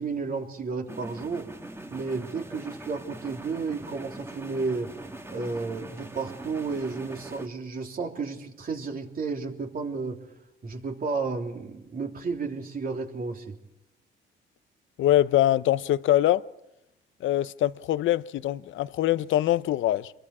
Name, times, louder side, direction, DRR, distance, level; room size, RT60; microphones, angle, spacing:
voice 1, 0.0-1.5 1.9-4.9 5.3-10.2 10.6-13.6, right 4 dB, 45° right, 3.3 m, -32 dB
sound 1, 0.9-7.5, right 2 dB, 10° right, 1.7 m, -42 dB
voice 2, 15.0-16.4 17.2-20.1, left 13 dB, 75° left, 0.7 m, -23 dB
28.5 x 22.5 x 4.9 m
cardioid pair, 90°, 20 cm